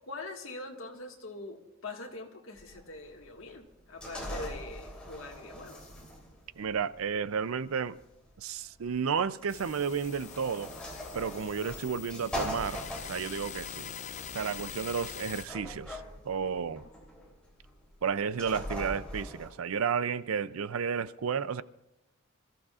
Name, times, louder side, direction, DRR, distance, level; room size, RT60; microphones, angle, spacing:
voice 1, 0.1-5.9, left 2 dB, 70° left, 1.8 m, -43 dB
sound 1, 2.6-19.5, equal, 5° left, 3.0 m, -42 dB
voice 2, 6.6-8.0 8.4-10.7 11.1-12.8 13.1-13.9 14.3-16.8 18.0-21.6, right 6 dB, 80° right, 0.5 m, -32 dB
sound 2, 9.5-15.5, left 8 dB, 35° left, 0.4 m, -43 dB
26.5 x 14.5 x 2.4 m
head